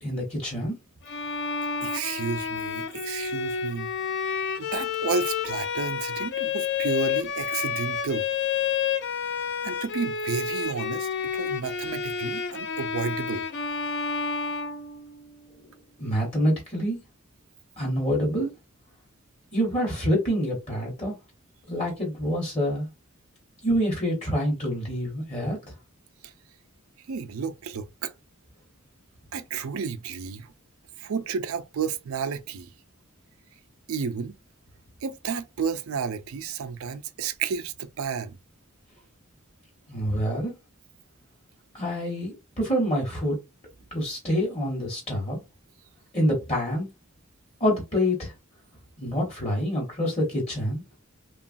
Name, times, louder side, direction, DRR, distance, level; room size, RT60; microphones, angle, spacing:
voice 1, 0.0-0.8 16.0-17.0 17.8-18.5 19.5-21.2 21.7-22.9 23.6-25.7 39.9-40.5 41.7-43.4 43.9-45.4 46.1-46.9 47.6-48.3 49.0-50.8, equal, 30° left, 1.0 m, -26 dB
Bowed string instrument, 1.1-15.3, left 6 dB, 55° left, 0.4 m, -30 dB
voice 2, 1.8-3.9 4.6-8.3 9.6-13.5 26.2-26.3 27.1-28.1 29.3-30.5 31.0-32.7 33.9-34.4 35.0-38.4, right 5 dB, 85° right, 0.4 m, -31 dB
2.9 x 2.3 x 2.5 m
head